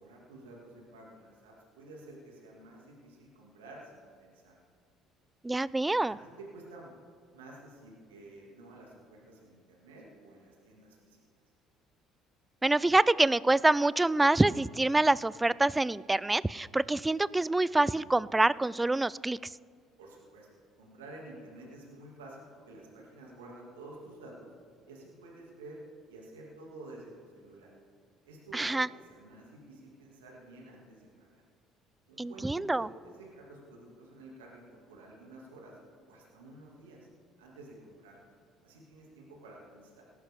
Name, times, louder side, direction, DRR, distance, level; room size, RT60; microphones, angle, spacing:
voice 1, 0.0-4.6 6.1-6.9 7.3-11.2 20.0-20.5 20.8-24.5 24.9-25.8 26.1-27.7 28.2-31.4 32.1-35.8 36.1-37.1 37.4-38.3 38.6-40.0, right 2 dB, 90° right, -3 dB, 2.3 m, -51 dB
voice 2, 5.4-6.2 12.6-19.5 28.5-28.9 32.2-32.9, right 2 dB, 15° right, 21 dB, 0.3 m, -26 dB
18.0 x 11.0 x 3.7 m, 2.1 s
hypercardioid pair, 60°, 0 cm